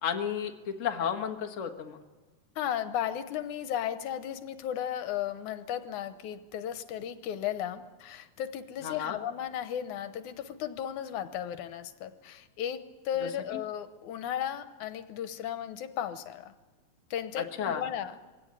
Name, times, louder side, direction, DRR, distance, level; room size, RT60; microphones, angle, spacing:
voice 1, 0.0-2.0 8.8-9.2 13.2-13.3 17.4-17.8, left 8 dB, 35° left, 4 dB, 1.3 m, -32 dB
voice 2, 2.6-16.5 17.1-18.2, left 10 dB, 80° left, 10 dB, 2.4 m, -35 dB
22.0 x 17.5 x 9.7 m, 1.3 s
omnidirectional pair, 3.5 m